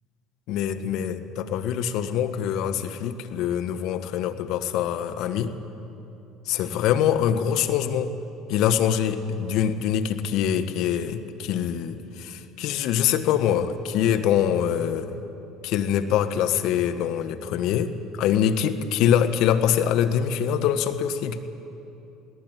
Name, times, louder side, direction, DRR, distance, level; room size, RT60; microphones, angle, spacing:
voice 1, 0.5-5.5 6.5-8.1 8.5-15.2 15.6-17.9 18.2-21.4, left 9 dB, 65° left, 9 dB, 1.3 m, -24 dB
20.5 x 18.0 x 9.1 m, 2.9 s
hypercardioid pair, 70°, 0 cm